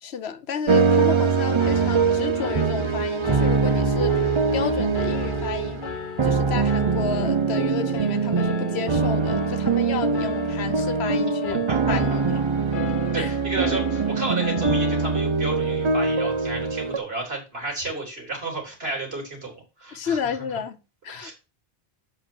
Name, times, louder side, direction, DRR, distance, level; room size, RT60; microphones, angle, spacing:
voice 1, 0.0-5.8 6.2-11.6 11.9-12.4 13.1-13.3 19.9-20.8 21.0-21.3, left 7 dB, 80° left, 1.1 m, -31 dB
sound 1, 0.7-17.0, right 5 dB, 40° right, 0.5 m, -23 dB
Piano, 1.6-15.3, left 7 dB, 55° left, 0.9 m, -36 dB
voice 2, 11.7-12.2 13.1-20.5 21.1-21.3, right 2 dB, 70° right, 3.8 m, -32 dB
7.4 x 5.5 x 6.1 m
omnidirectional pair, 1.1 m